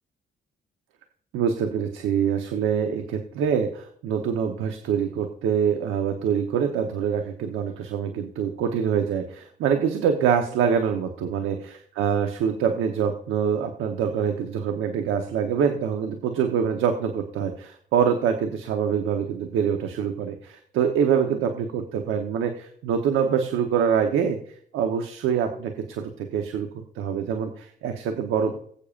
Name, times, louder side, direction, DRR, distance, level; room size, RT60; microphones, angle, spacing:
voice 1, 1.3-11.5 11.9-24.4 24.7-26.7 27.0-28.6, right 7 dB, 90° right, 5 dB, 1.0 m, -25 dB
19.5 x 8.5 x 2.5 m, 0.63 s
cardioid pair, 90°, 20 cm